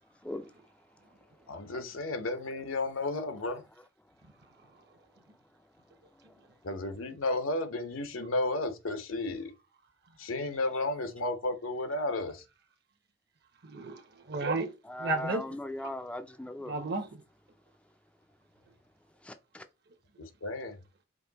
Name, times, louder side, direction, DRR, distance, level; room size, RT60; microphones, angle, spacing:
voice 1, 1.5-3.6 6.6-9.5 10.2-12.4 20.2-20.8, left 2 dB, 85° left, 0.9 m, -33 dB
voice 2, 13.6-14.7 15.0-15.9 16.7-17.2, right 3 dB, 50° right, 0.9 m, -33 dB
voice 3, 14.9-16.7 19.2-19.6, left 1 dB, 5° left, 0.3 m, -38 dB
5.1 x 2.7 x 3.9 m
head